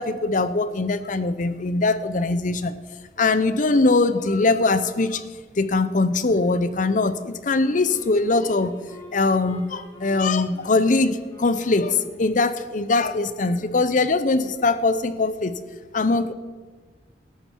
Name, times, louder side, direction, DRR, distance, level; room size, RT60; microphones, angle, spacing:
voice 1, 0.0-2.8 3.2-5.2 5.6-8.8 9.1-15.6 15.9-16.3, left 3 dB, 50° left, 13 dB, 0.7 m, -22 dB
Wind instrument woodwind instrument, 7.5-12.5, equal, 20° left, 2.6 m, -46 dB
14.0 x 12.5 x 4.6 m, 1.4 s
head